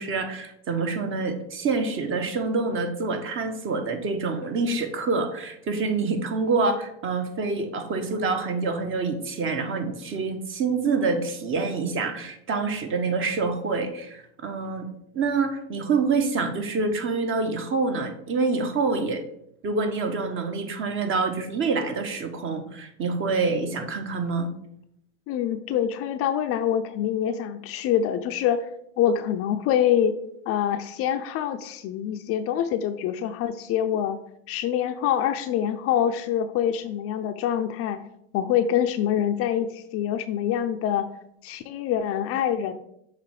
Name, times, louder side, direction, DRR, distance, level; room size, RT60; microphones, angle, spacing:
voice 1, 0.0-14.9 15.1-19.2 19.6-24.5, right 4 dB, 35° right, 6 dB, 1.1 m, -26 dB
voice 2, 25.3-28.7 29.0-30.2 30.5-34.2 34.5-38.0 38.3-41.1 41.4-42.7, left 9 dB, 40° left, 8 dB, 0.5 m, -25 dB
6.7 x 3.2 x 4.8 m, 0.75 s
hypercardioid pair, 85°, 36 cm